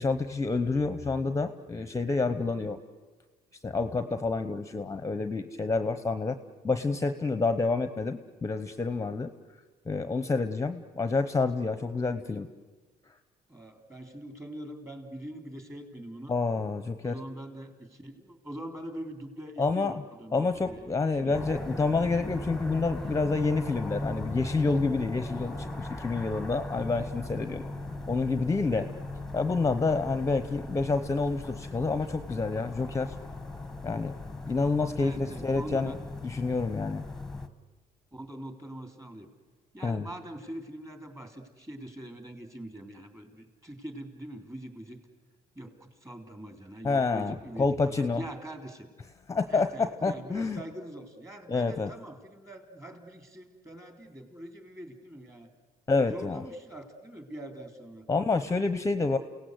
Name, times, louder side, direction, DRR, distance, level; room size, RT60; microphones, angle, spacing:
voice 1, 0.0-2.8 3.6-6.4 6.6-9.3 9.9-12.5 16.3-17.2 19.6-19.9 20.3-27.6 28.1-28.9 29.3-33.1 33.8-34.1 34.5-35.9 36.2-37.0 39.8-40.1 46.8-48.2 49.3-50.6 51.5-51.9 55.9-56.4 58.1-59.2, left 3 dB, 20° left, 10 dB, 1.0 m, -28 dB
voice 2, 13.5-16.3 17.0-21.4 35.0-36.0 38.1-39.3 39.7-45.0 45.5-48.9 49.5-55.5 56.0-58.1, right 1 dB, 15° right, 6 dB, 3.3 m, -43 dB
sound 1, 21.3-37.5, left 2 dB, 5° left, 1.4 m, -38 dB
29.0 x 17.5 x 8.0 m, 1.3 s
cardioid pair, 110°, 17 cm